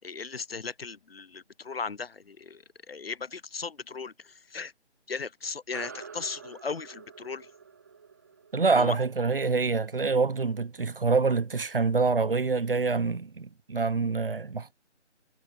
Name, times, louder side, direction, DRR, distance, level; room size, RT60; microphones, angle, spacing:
voice 1, 0.0-4.7 5.1-7.5 8.7-9.0, left 5 dB, 55° left, 0.7 m, -37 dB
sound 1, 5.7-10.5, right 6 dB, 15° right, 2.1 m, -48 dB
voice 2, 8.5-14.7, right 4 dB, 50° right, 0.6 m, -26 dB
figure-of-eight pair, 175°, 35 cm